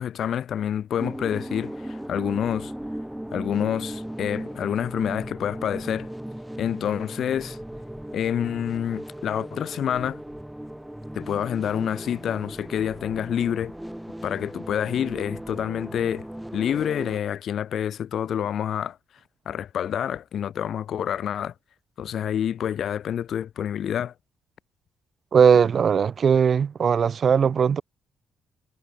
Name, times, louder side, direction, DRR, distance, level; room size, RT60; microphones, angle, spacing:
voice 1, 0.0-2.7 3.3-6.1 6.6-7.6 8.1-10.2 11.1-13.7 14.2-16.3 16.5-19.0 19.4-21.5 22.0-24.1, left 9 dB, 60° left, 4.7 m, -28 dB
sound 1, 1.0-17.2, right 1 dB, 5° right, 1.5 m, -37 dB
voice 2, 25.3-27.8, right 7 dB, 45° right, 2.4 m, -19 dB
cardioid pair, 120°, 0 cm